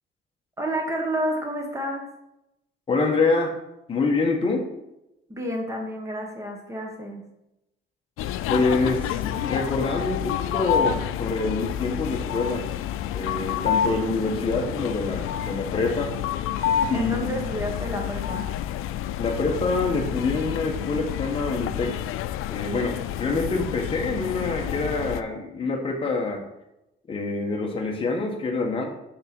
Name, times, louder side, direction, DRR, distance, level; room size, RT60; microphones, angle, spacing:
voice 1, 0.6-2.1 5.3-7.3 16.9-18.5, equal, 15° right, 1 dB, 1.2 m, -30 dB
voice 2, 2.9-3.5 3.9-4.7 8.5-12.6 13.1-16.1 16.9-17.3 19.2-22.0 22.5-26.4 27.1-28.9, left 3 dB, 25° left, 1 dB, 1.2 m, -26 dB
sound 1, 8.2-25.2, left 10 dB, 80° left, 0.4 m, -29 dB
6.6 x 3.7 x 6.0 m, 0.88 s
cardioid pair, 175°, 21 cm